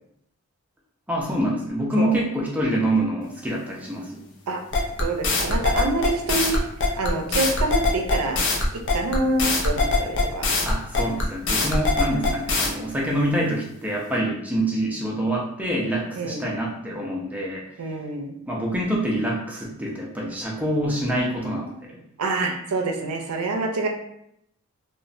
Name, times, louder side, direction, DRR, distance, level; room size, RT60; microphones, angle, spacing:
voice 1, 1.1-4.3 10.6-17.9 18.5-21.7, right 1 dB, 5° right, -3 dB, 0.4 m, -26 dB
sound 1, 4.7-12.7, left 3 dB, 55° left, 0.5 m, -22 dB
voice 2, 5.0-6.6 7.0-8.4 8.9-10.5 16.2-16.5 17.8-18.4 22.2-23.9, right 2 dB, 85° right, 2 dB, 0.4 m, -26 dB
3.0 x 2.1 x 2.5 m, 0.75 s
head